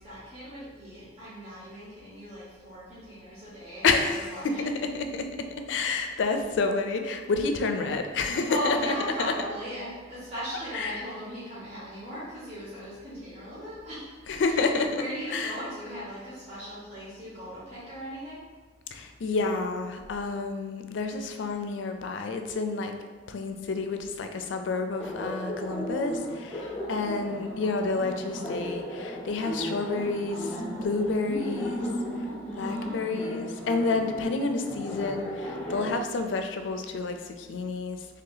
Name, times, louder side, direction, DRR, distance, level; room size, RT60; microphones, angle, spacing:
voice 1, 0.0-4.7 8.5-14.6 14.9-18.4 26.6-27.0 32.2-32.9, equal, 35° right, -10 dB, 1.0 m, -38 dB
voice 2, 3.8-5.4 5.7-9.3 10.7-11.0 14.3-15.0 15.3-15.6 18.9-22.9 23.3-30.6 30.8-31.9 32.6-38.0, left 3 dB, 70° left, 6 dB, 0.4 m, -29 dB
Laughter, 25.0-35.9, equal, 5° left, 0.7 m, -35 dB
3.2 x 2.8 x 3.9 m, 1.4 s
head